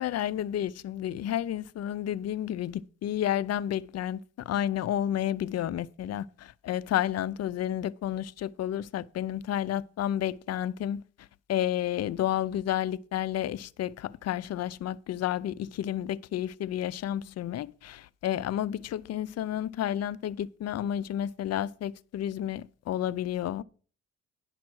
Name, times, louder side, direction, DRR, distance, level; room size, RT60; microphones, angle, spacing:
voice 1, 0.0-4.2 4.5-11.0 11.5-23.6, left 11 dB, 55° left, 0.5 m, -31 dB
10.5 x 5.8 x 6.2 m
cardioid pair, 90°, 30 cm